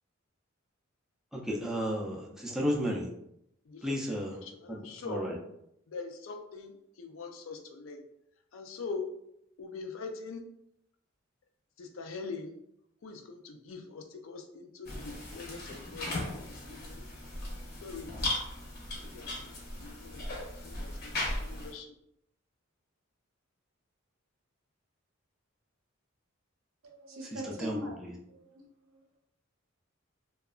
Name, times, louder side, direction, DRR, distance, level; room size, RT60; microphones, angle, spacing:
voice 1, 1.3-3.1 3.8-4.4 4.7-5.4 27.3-28.1, equal, 5° right, -2 dB, 0.4 m, -33 dB
voice 2, 3.7-4.0 4.3-5.2 5.9-6.7 7.0-8.0 8.5-9.1 9.6-10.4 11.8-12.5 13.0-17.1 17.8-18.1 19.0-19.5 19.8-20.3 20.6-21.9, left 4 dB, 70° left, 4 dB, 0.4 m, -43 dB
sound 1, 14.9-21.7, left 1 dB, 50° left, 0.7 m, -37 dB
voice 3, 26.8-28.0 28.3-29.0, equal, 75° right, 1 dB, 0.6 m, -42 dB
2.7 x 2.3 x 2.3 m, 0.77 s
head